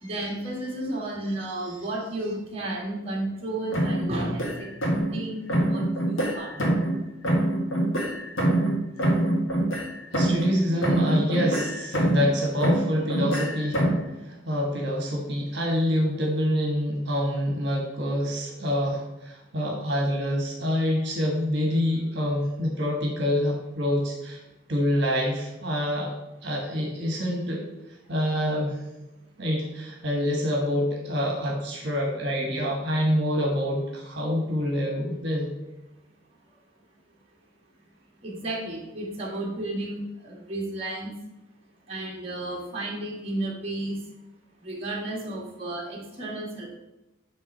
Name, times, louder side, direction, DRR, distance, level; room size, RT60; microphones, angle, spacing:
voice 1, 0.0-4.7 5.1-5.8 6.1-6.6 38.2-41.1 41.9-44.0 44.6-46.7, right 1 dB, 30° right, -3 dB, 1.8 m, -32 dB
sound 1, 3.7-5.2 5.5-7.0 7.2-10.6 10.8-12.3 12.6-14.1, right 1 dB, 80° left, 1.6 m, -25 dB
voice 2, 10.1-13.8 14.3-24.4 24.7-26.2 26.4-27.6 28.1-28.8 29.4-35.5, equal, 55° right, -1 dB, 1.5 m, -26 dB
8.9 x 3.6 x 5.4 m, 0.98 s
head